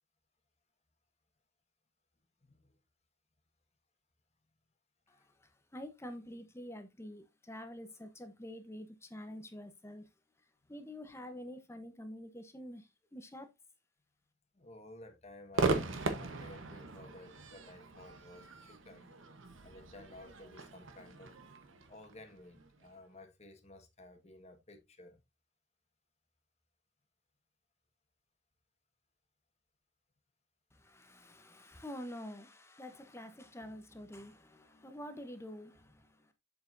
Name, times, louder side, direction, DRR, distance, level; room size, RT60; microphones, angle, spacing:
voice 1, 2.4-2.7 5.1-5.3 14.5-19.1 19.6-21.3 21.9-25.2, left 1 dB, 30° left, 1.6 m, -54 dB
voice 2, 5.1-10.1 10.7-13.5 30.7-36.3, equal, 10° left, 0.9 m, -47 dB
Crowd / Fireworks, 15.5-22.9, right 3 dB, 60° right, 1.1 m, -38 dB
7.6 x 7.4 x 2.6 m
head